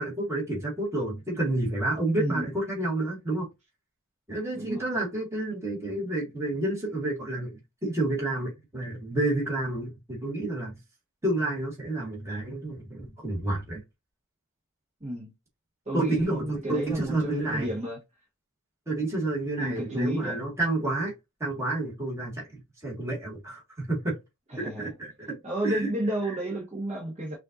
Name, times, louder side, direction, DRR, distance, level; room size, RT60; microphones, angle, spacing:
voice 1, 0.0-3.5 4.3-10.7 11.2-13.8 15.9-17.7 18.9-21.1 21.4-24.2 24.6-25.4 25.6-25.9, right 2 dB, 10° right, 1.8 m, -30 dB
voice 2, 4.5-4.8 15.0-15.3 15.8-18.0 19.6-20.4 24.5-24.9 25.4-27.3, right 1 dB, 30° right, 1.4 m, -31 dB
5.5 x 2.6 x 2.5 m
head